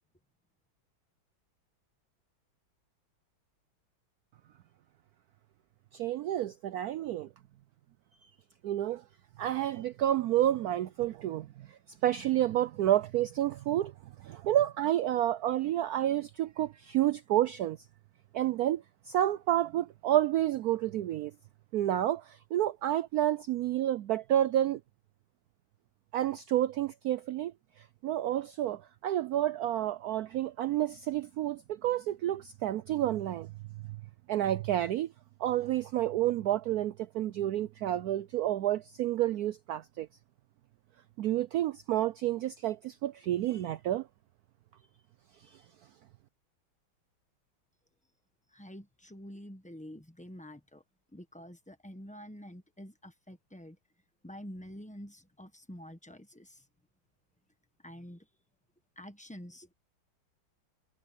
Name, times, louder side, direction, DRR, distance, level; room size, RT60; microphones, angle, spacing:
voice 1, 5.9-7.3 8.6-9.0 9.4-13.9 14.2-17.8 18.3-21.3 21.7-24.8 26.1-27.5 28.0-33.5 34.3-35.1 35.4-40.1 41.2-44.1 45.4-45.6, right 12 dB, 90° right, 0.8 m, -30 dB
voice 2, 48.5-50.8 51.1-53.8 54.2-56.6 57.8-58.3 59.0-59.7, equal, 5° left, 0.8 m, -47 dB
omnidirectional pair, 2.2 m